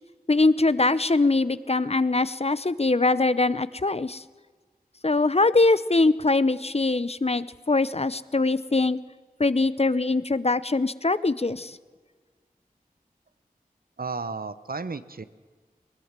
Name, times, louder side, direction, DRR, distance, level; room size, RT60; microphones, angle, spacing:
voice 1, 0.3-4.2 5.0-9.0 9.4-11.8, left 3 dB, 40° left, 16 dB, 0.8 m, -22 dB
voice 2, 14.0-15.2, right 4 dB, 75° right, 13 dB, 1.0 m, -33 dB
20.0 x 20.0 x 7.5 m, 1.5 s
wide cardioid pair, 45°, 15 cm